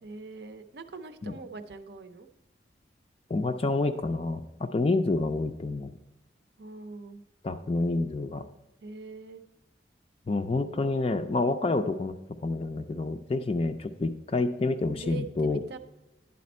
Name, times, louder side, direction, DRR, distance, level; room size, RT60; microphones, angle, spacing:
voice 1, 0.0-2.3 6.6-7.2 8.8-9.4 14.9-15.8, right 4 dB, 65° right, 8 dB, 0.5 m, -43 dB
voice 2, 3.3-5.9 7.4-8.4 10.3-12.1 12.4-15.6, left 2 dB, 30° left, 8 dB, 0.3 m, -28 dB
10.5 x 4.2 x 4.2 m, 0.97 s
head